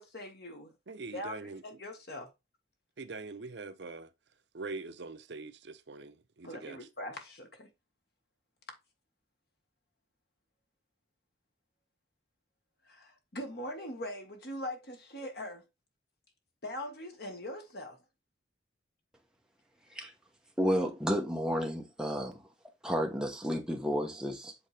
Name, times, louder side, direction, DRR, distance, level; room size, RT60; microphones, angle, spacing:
voice 1, 0.0-0.7 1.1-2.3 6.4-7.7 12.8-15.6 16.6-18.0, left 1 dB, 55° left, 1.6 m, -41 dB
voice 2, 0.9-1.6 3.0-4.1 4.5-6.8, right 3 dB, 65° right, 0.6 m, -43 dB
voice 3, 20.6-22.4 22.8-24.5, equal, 5° right, 1.0 m, -31 dB
7.9 x 3.6 x 3.3 m
head